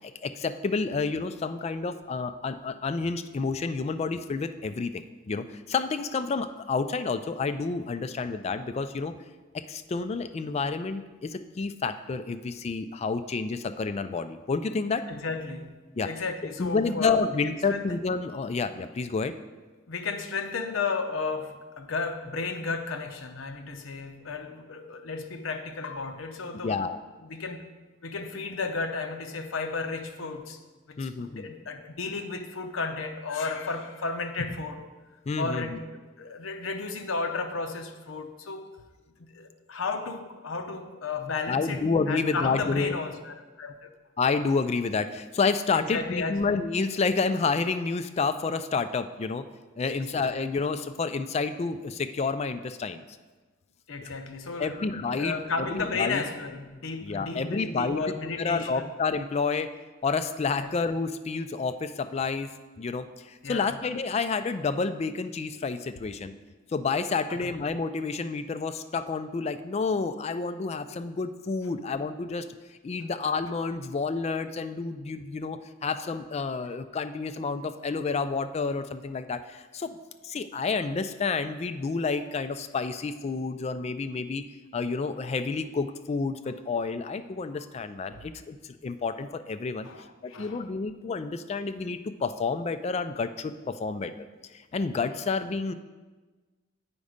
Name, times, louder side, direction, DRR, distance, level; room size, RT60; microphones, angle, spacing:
voice 1, 0.0-9.1 9.5-15.0 16.0-16.1 16.6-19.3 26.6-27.0 31.0-31.5 35.3-35.8 41.5-43.0 44.2-49.4 49.8-53.0 54.0-54.1 54.6-56.2 57.0-58.0 58.4-59.7 60.0-62.5 62.8-66.3 66.7-72.5 72.8-80.0 80.2-84.4 84.7-89.9 90.2-94.1 94.7-95.7, left 4 dB, 30° left, 11 dB, 0.3 m, -29 dB
voice 2, 15.1-15.8 16.0-17.2 17.7-18.0 19.9-26.8 27.2-27.6 28.0-30.6 30.9-34.8 35.4-35.7 36.2-38.7 39.2-43.9 45.7-46.4 49.9-50.2 53.9-58.9 60.6-60.8 63.4-63.8 67.3-67.6 81.3-81.4 87.5-87.6 88.1-88.3 89.8-90.6, left 4 dB, 85° left, 6 dB, 0.7 m, -33 dB
8.3 x 5.2 x 5.0 m, 1.3 s
head